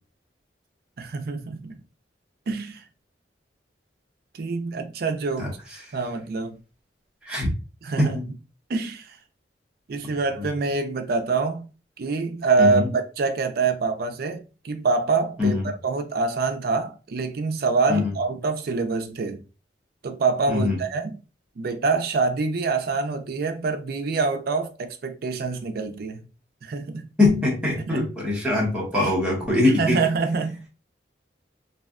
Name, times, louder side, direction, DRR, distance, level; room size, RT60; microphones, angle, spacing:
voice 1, 1.0-1.8 2.5-2.8 4.3-5.6 5.9-6.6 7.8-8.2 8.7-9.2 9.9-11.7 12.0-19.4 20.0-21.2 21.6-26.2 26.6-27.1 27.9-28.1 29.0-29.1 29.6-30.7, right 4 dB, 55° right, 0.4 m, -25 dB
voice 2, 27.2-30.0, left 2 dB, 5° right, 0.8 m, -22 dB
2.6 x 2.2 x 2.4 m
head